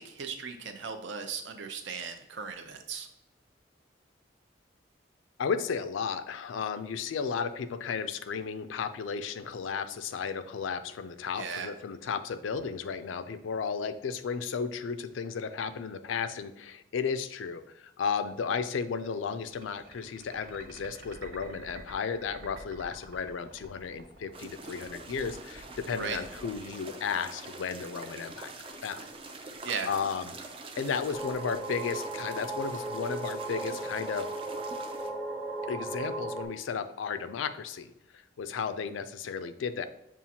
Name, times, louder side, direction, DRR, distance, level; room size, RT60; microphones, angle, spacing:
voice 1, 0.0-3.1 11.4-11.7 26.0-26.2 29.6-29.9, right 6 dB, 70° right, 6 dB, 0.6 m, -37 dB
voice 2, 5.4-28.5 28.8-29.0 29.9-30.3 30.8-34.3 35.7-39.9, left 6 dB, 85° left, 11 dB, 0.4 m, -34 dB
sound 1, 19.0-27.7, right 2 dB, 90° right, 1.6 m, -51 dB
sound 2, 24.3-35.1, right 3 dB, 30° right, 0.3 m, -45 dB
sound 3, 31.1-36.4, right 2 dB, 10° right, 0.8 m, -36 dB
7.1 x 2.4 x 2.8 m, 0.88 s
head